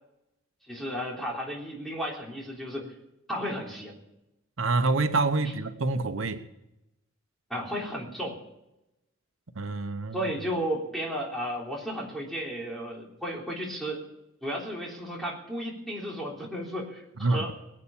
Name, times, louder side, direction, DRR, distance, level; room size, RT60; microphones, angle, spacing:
voice 1, 0.7-2.9 3.3-4.0 7.5-8.4 10.1-14.0 14.4-17.5, equal, ahead, -3 dB, 3.4 m, -33 dB
voice 2, 4.6-6.4 9.5-10.2 17.2-17.5, right 3 dB, 85° right, 9 dB, 1.0 m, -26 dB
21.0 x 8.5 x 7.3 m, 0.90 s
head